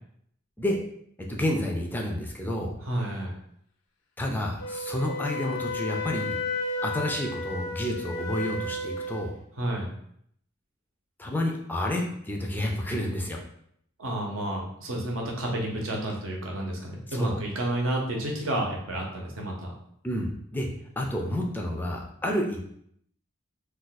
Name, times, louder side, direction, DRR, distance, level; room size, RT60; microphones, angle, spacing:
voice 1, 1.2-2.7 4.2-6.4 6.8-9.3 11.2-13.4 17.1-17.4 20.0-20.7 21.0-22.6, left 1 dB, 10° left, 0 dB, 0.3 m, -30 dB
voice 2, 2.8-3.4 9.6-9.9 14.0-19.7, right 1 dB, 70° right, -1 dB, 0.8 m, -30 dB
Wind instrument woodwind instrument, 4.6-9.3, left 2 dB, 85° left, 0.4 m, -33 dB
2.4 x 2.3 x 4.0 m, 0.69 s
head